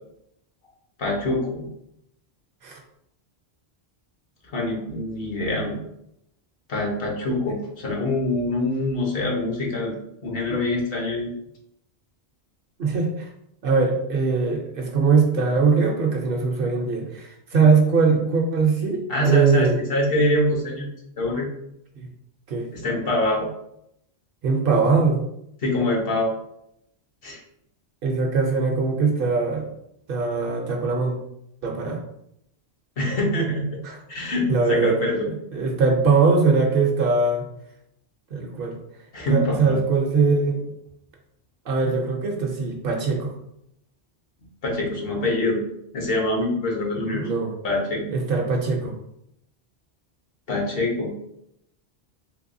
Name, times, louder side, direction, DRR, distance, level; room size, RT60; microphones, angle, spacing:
voice 1, 1.0-1.7 4.5-5.8 6.7-9.9 10.2-11.3 17.5-17.6 19.1-20.9 21.2-21.5 22.7-23.5 25.6-26.3 27.2-27.4 33.0-33.7 34.1-35.3 39.1-39.8 44.6-45.6 45.9-47.2 47.6-48.0 50.5-51.1, left 1 dB, 65° left, -1 dB, 1.1 m, -24 dB
voice 2, 12.8-13.3 13.6-19.8 22.0-22.1 22.5-22.7 24.4-25.2 28.0-29.6 30.1-31.2 31.6-32.0 33.8-34.0 34.5-35.0 35.5-37.4 38.3-38.7 39.3-40.7 41.7-43.3 47.0-47.5 48.1-48.9, right 4 dB, 60° right, 2 dB, 0.7 m, -21 dB
3.3 x 3.2 x 2.6 m, 0.78 s
omnidirectional pair, 1.1 m